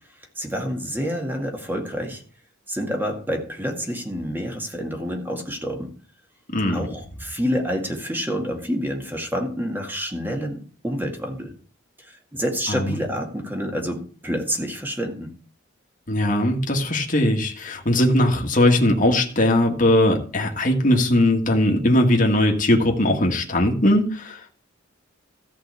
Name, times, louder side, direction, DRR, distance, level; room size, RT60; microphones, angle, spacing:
voice 1, 0.4-2.2 2.7-5.9 6.7-11.5 12.0-15.3, equal, 10° right, 2 dB, 2.0 m, -28 dB
voice 2, 16.1-24.5, left 1 dB, 40° left, 1 dB, 1.9 m, -19 dB
14.0 x 5.2 x 8.3 m, 0.42 s
head